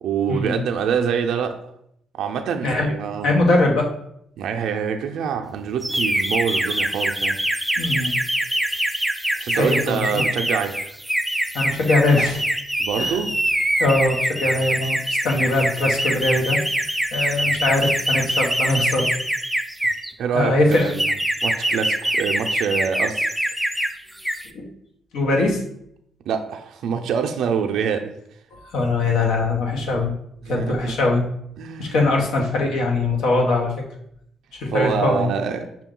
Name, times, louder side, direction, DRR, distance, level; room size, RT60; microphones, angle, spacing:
voice 1, 0.0-1.6 2.1-3.3 4.4-7.4 9.4-11.0 12.8-13.4 20.2-21.1 21.4-23.3 26.3-28.1 30.5-30.9 31.6-32.0 34.7-35.7, right 7 dB, 75° right, 4 dB, 0.4 m, -25 dB
voice 2, 3.2-3.9 7.8-8.1 9.5-10.2 11.5-12.4 13.0-13.1 13.8-19.1 20.3-21.0 24.5-24.7 25.1-25.6 28.5-30.1 30.5-31.2 31.8-33.7 34.6-35.3, left 2 dB, 85° left, 0 dB, 1.0 m, -21 dB
sound 1, 5.8-20.1 20.7-23.9 24.2-24.5, right 1 dB, 5° right, 0.3 m, -24 dB
6.1 x 2.2 x 3.7 m, 0.72 s
cardioid pair, 90°, 0 cm